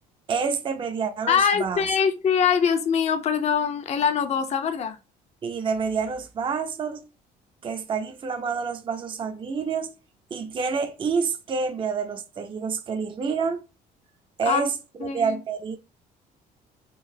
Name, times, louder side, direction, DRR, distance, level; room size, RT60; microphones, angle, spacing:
voice 1, 0.3-1.9 5.4-7.1 7.6-9.9 10.3-13.6 14.4-14.7 15.0-15.8, right 5 dB, 30° right, 0.5 m, -28 dB
voice 2, 1.3-5.0 14.5-14.7 15.0-15.4, left 7 dB, 40° left, 0.5 m, -23 dB
3.8 x 2.7 x 2.6 m
cardioid pair, 110°, 17 cm